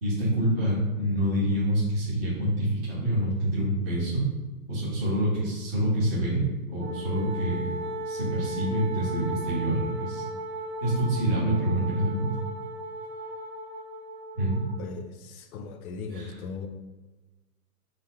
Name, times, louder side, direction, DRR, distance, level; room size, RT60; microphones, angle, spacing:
voice 1, 0.0-4.3 4.7-7.7 8.1-10.2 10.8-12.3 14.3-14.6 16.1-16.4, right 1 dB, 10° right, -9 dB, 0.4 m, -26 dB
Wind instrument woodwind instrument, 6.8-14.8, right 1 dB, 40° right, 1.3 m, -36 dB
voice 2, 14.8-16.7, left 5 dB, 65° left, 7 dB, 0.6 m, -38 dB
3.9 x 2.0 x 4.2 m, 1.2 s
hypercardioid pair, 145°, 47 cm